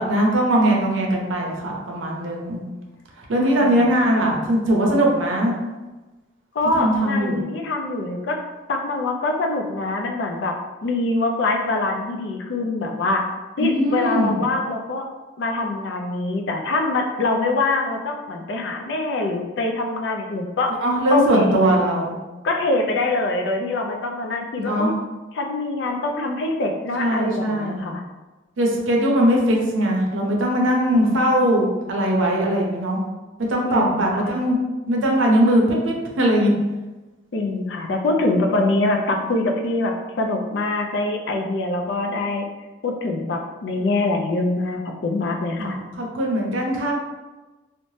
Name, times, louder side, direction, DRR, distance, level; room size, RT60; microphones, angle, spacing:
voice 1, 0.0-2.6 3.3-5.6 6.7-7.4 13.6-14.4 20.8-22.2 24.6-24.9 27.0-27.9 28.6-33.0 33.5-34.6 34.9-36.5 45.6-46.9, right 1 dB, 80° right, -1 dB, 0.5 m, -20 dB
voice 2, 3.3-3.8 6.5-8.4 8.7-10.6 10.8-13.2 13.6-15.0 15.4-20.7 21.1-21.6 22.4-24.9 25.3-28.0 33.7-34.3 37.3-42.5 42.8-45.8, left 2 dB, 65° left, 3 dB, 0.4 m, -24 dB
2.6 x 2.1 x 3.1 m, 1.2 s
head